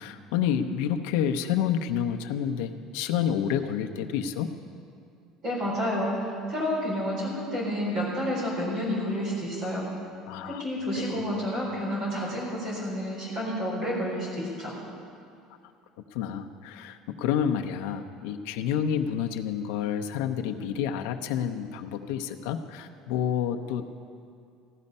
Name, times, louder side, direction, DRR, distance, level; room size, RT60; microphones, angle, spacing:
voice 1, 0.0-4.5 10.3-10.6 11.0-11.3 16.1-24.0, left 8 dB, 90° left, 5 dB, 0.8 m, -29 dB
voice 2, 5.4-9.9 10.4-14.7, equal, 40° right, -4 dB, 4.2 m, -30 dB
15.5 x 12.0 x 5.5 m, 2.4 s
cardioid pair, 175°, 0 cm